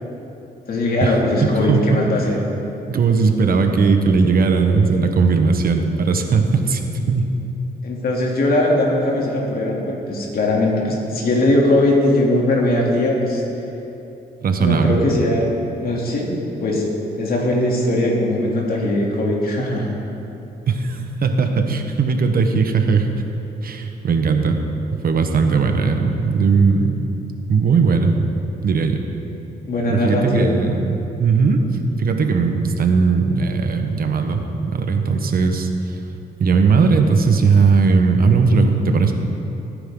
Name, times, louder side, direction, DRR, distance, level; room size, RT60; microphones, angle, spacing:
voice 1, 0.7-2.4 7.8-13.4 14.6-15.5 15.8-16.9 17.2-20.0 29.7-30.5, left 1 dB, 60° left, -2 dB, 3.1 m, -20 dB
voice 2, 2.9-7.3 14.4-15.0 20.7-23.1 23.6-24.6 25.0-27.0 27.5-28.1 28.6-29.0 29.9-31.6 32.0-36.0 36.4-39.1, right 4 dB, 55° right, 5 dB, 1.3 m, -18 dB
20.5 x 9.7 x 3.9 m, 2.9 s
cardioid pair, 75°, 18 cm